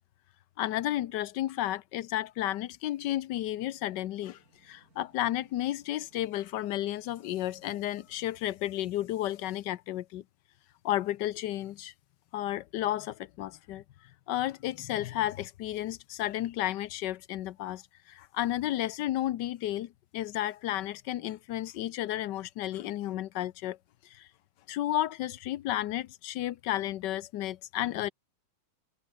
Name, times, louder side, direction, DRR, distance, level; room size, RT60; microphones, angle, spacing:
voice 1, 0.6-10.2 10.8-11.9 12.3-13.8 14.3-23.8 24.0-24.3 24.7-28.1, left 13 dB, 80° left, 1.3 m, -32 dB
sound 1, 3.4-8.6, right 2 dB, 55° right, 6.0 m, -65 dB
omnidirectional pair, 1.9 m